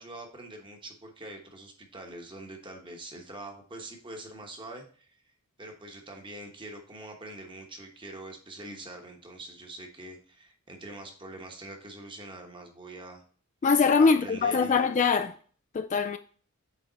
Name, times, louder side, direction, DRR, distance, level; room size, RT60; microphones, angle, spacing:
voice 1, 0.0-5.1 5.6-13.2 14.0-15.0, right 2 dB, 25° right, 1.1 m, -44 dB
voice 2, 13.6-15.3 15.7-16.2, left 5 dB, 35° left, 0.3 m, -23 dB
8.4 x 3.5 x 4.0 m
head